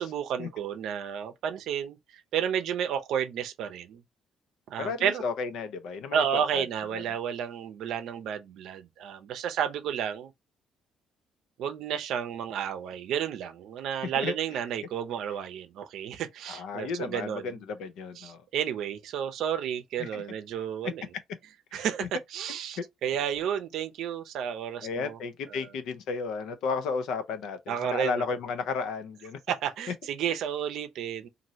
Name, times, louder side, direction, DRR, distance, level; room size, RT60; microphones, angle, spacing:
voice 1, 0.0-4.0 4.7-5.2 6.1-10.3 11.6-17.6 18.2-21.1 21.7-25.2 25.5-25.7 27.7-28.2 29.5-31.3, right 9 dB, 65° right, 0.6 m, -32 dB
voice 2, 4.8-6.2 6.5-6.6 6.9-7.0 14.0-14.3 16.5-18.4 20.0-20.2 21.7-22.1 22.8-22.9 24.8-29.4, left 5 dB, 70° left, 0.6 m, -33 dB
2.7 x 2.6 x 3.0 m
cardioid pair, 175°, 0 cm